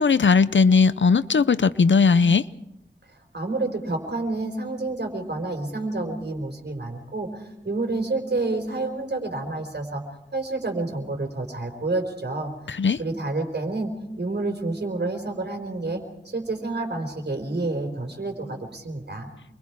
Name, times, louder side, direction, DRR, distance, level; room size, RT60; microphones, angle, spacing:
voice 1, 0.0-2.4 12.7-13.0, left 5 dB, 80° left, 0.7 m, -18 dB
voice 2, 3.3-10.0 10.3-12.5 13.0-13.9 14.2-19.3, right 2 dB, 65° right, 4.4 m, -29 dB
28.0 x 23.0 x 4.8 m
wide cardioid pair, 75°, 19 cm